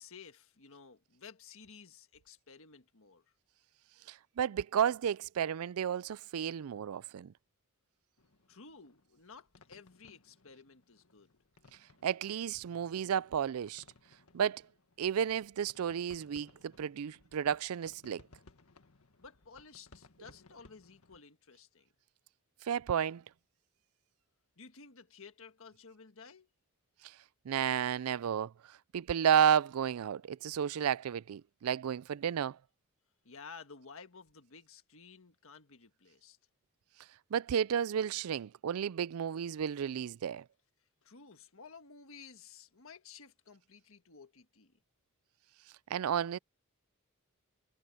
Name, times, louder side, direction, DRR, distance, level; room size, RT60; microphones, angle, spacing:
voice 1, 0.0-3.2 8.5-11.4 19.2-21.9 24.6-26.5 33.2-36.4 41.0-44.8, left 5 dB, 65° left, 1.6 m, -54 dB
voice 2, 4.1-7.3 12.0-13.8 14.3-14.6 15.0-18.2 22.6-23.2 27.0-27.1 27.5-32.6 37.3-40.4 45.9-46.4, right 8 dB, 85° right, 0.4 m, -32 dB
sound 1, 8.2-21.2, left 3 dB, 85° left, 1.7 m, -63 dB
head